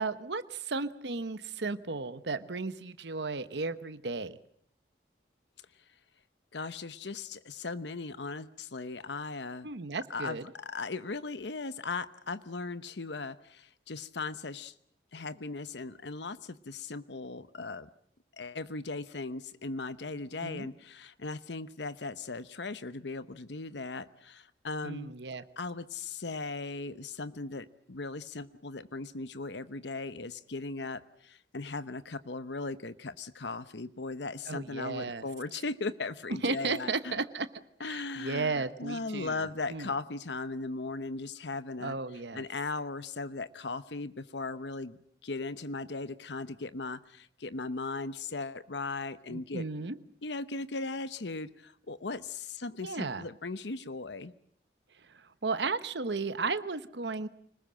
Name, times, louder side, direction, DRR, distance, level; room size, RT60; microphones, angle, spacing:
voice 1, 0.0-4.4 9.6-10.5 20.4-20.7 24.8-25.4 34.5-35.2 36.4-37.5 37.8-39.3 39.7-39.9 41.8-42.4 49.3-50.0 52.8-53.2 55.1-57.3, right 4 dB, 80° right, 12 dB, 1.0 m, -34 dB
voice 2, 6.5-9.7 10.1-14.7 15.1-17.9 18.4-25.1 25.6-37.1 37.8-42.0 42.3-49.7 50.2-54.3, left 3 dB, 80° left, 14 dB, 0.9 m, -38 dB
25.5 x 20.5 x 7.6 m, 0.65 s
head